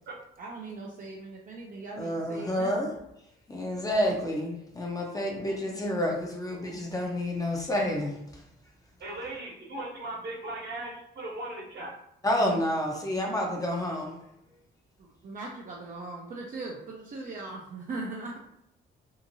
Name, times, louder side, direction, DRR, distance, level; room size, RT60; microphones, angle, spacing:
voice 1, 0.4-2.8 15.0-18.4, right 3 dB, 45° right, -3 dB, 0.5 m, -39 dB
voice 2, 2.0-2.9 3.5-8.2 12.2-14.1, left 1 dB, 20° left, 0 dB, 0.6 m, -29 dB
voice 3, 9.0-11.9, right 2 dB, 60° right, -3 dB, 1.1 m, -38 dB
2.8 x 2.5 x 2.7 m, 0.79 s
cardioid pair, 90°, 20 cm